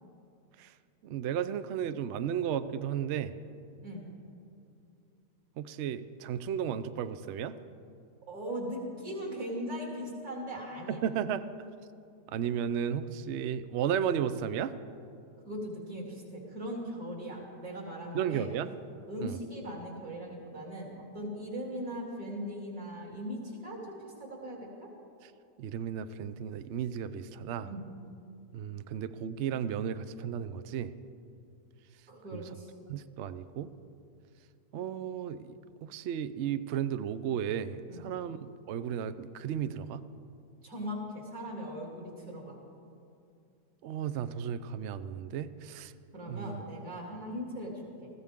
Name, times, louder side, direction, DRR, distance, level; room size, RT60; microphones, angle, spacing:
voice 1, 1.0-3.3 5.6-7.5 11.0-11.4 12.3-14.7 18.1-18.7 19.2-19.4 25.6-27.7 28.5-30.9 32.3-32.4 32.9-33.7 34.7-35.5 35.8-40.0 43.8-45.9 46.3-46.6, right 8 dB, 75° right, 12 dB, 0.6 m, -34 dB
voice 2, 8.3-11.0 15.5-18.5 19.1-24.9 27.6-27.9 32.1-32.7 37.9-38.1 40.6-42.6 46.1-48.1, equal, 60° right, -2 dB, 3.5 m, -39 dB
20.0 x 15.0 x 3.6 m, 2.4 s
omnidirectional pair, 1.8 m